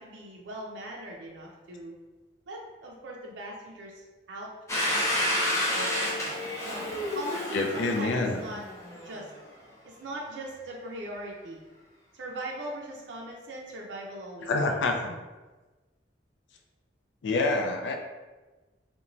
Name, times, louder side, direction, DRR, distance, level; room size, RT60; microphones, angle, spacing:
voice 1, 0.0-2.0 2.5-8.6 9.0-9.3 9.8-11.6 12.1-14.8, right 1 dB, 80° right, -2 dB, 0.4 m, -40 dB
Domestic sounds home sounds, 4.7-9.3, left 1 dB, 15° left, 0.5 m, -30 dB
voice 2, 7.5-8.4 14.5-15.1 17.2-18.0, left 3 dB, 85° left, 3 dB, 0.4 m, -27 dB
3.0 x 2.2 x 2.5 m, 1.2 s
head